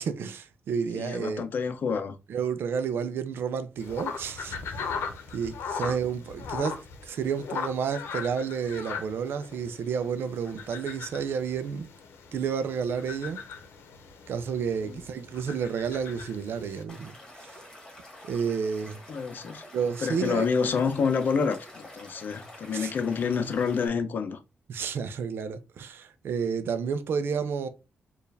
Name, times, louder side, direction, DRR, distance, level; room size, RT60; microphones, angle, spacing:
voice 1, 0.0-1.4 2.3-4.6 5.3-11.9 12.3-13.4 14.3-17.1 17.4-17.5 18.2-19.0 19.7-20.5 22.7-22.9 24.7-27.7, right 6 dB, 70° right, 0.5 m, -30 dB
voice 2, 0.9-2.2 5.7-6.0 14.8-15.0 19.1-19.7 20.0-24.4, left 5 dB, 50° left, 0.6 m, -28 dB
sound 1, 3.8-16.8, left 5 dB, 90° left, 0.8 m, -39 dB
Stream / Liquid, 16.9-23.9, left 1 dB, 20° left, 1.6 m, -48 dB
4.6 x 2.5 x 3.2 m
wide cardioid pair, 145°, 4 cm